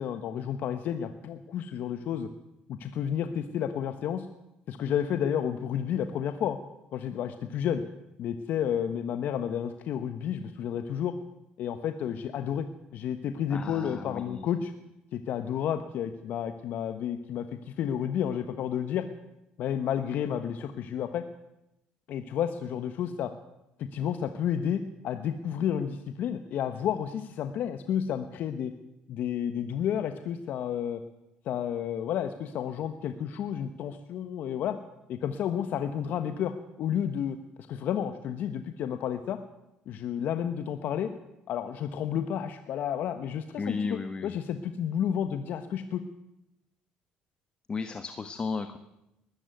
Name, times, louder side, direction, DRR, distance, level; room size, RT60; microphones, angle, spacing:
voice 1, 0.0-2.3 2.7-4.3 4.7-6.6 6.9-7.8 8.2-11.1 11.6-14.7 15.1-19.1 19.6-21.2 22.1-23.3 23.9-28.7 29.1-31.0 31.4-34.8 35.1-37.4 37.7-39.4 39.9-41.1 41.5-46.0, left 9 dB, 65° left, 9 dB, 1.3 m, -31 dB
voice 2, 13.5-14.4 43.6-44.4 47.7-48.8, left 4 dB, 30° left, 9 dB, 1.3 m, -34 dB
20.5 x 13.5 x 9.3 m, 0.90 s
cardioid pair, 95°, 3 cm